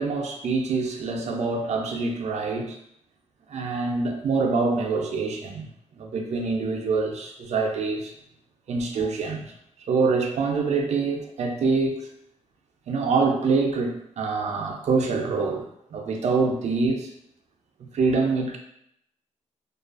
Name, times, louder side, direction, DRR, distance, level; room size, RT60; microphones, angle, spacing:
voice 1, 0.0-2.8 3.5-8.1 8.7-9.5 9.9-12.1 12.9-17.1 17.9-18.6, right 4 dB, 65° right, 2 dB, 0.4 m, -25 dB
2.4 x 2.3 x 2.4 m, 0.76 s
cardioid pair, 110°, 13 cm